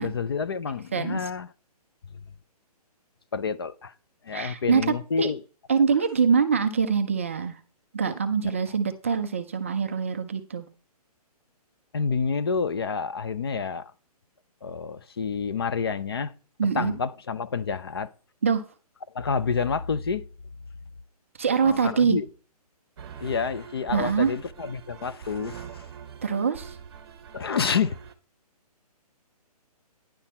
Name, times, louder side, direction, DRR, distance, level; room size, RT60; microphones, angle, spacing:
voice 1, 0.0-1.5 3.3-3.9 4.2-5.4 11.9-13.9 14.6-16.3 16.7-18.1 19.1-20.2 21.6-22.3 23.2-25.8 27.3-28.0, left 5 dB, 40° left, 0.5 m, -28 dB
voice 2, 4.3-5.3 5.7-7.6 7.9-10.7 16.6-16.9 18.4-18.6 21.4-22.2 23.9-24.3 26.2-26.8, right 6 dB, 20° right, 0.4 m, -24 dB
sound 1, 23.0-28.1, right 7 dB, 40° right, 1.1 m, -43 dB
10.0 x 5.8 x 4.2 m
hypercardioid pair, 170°, 20 cm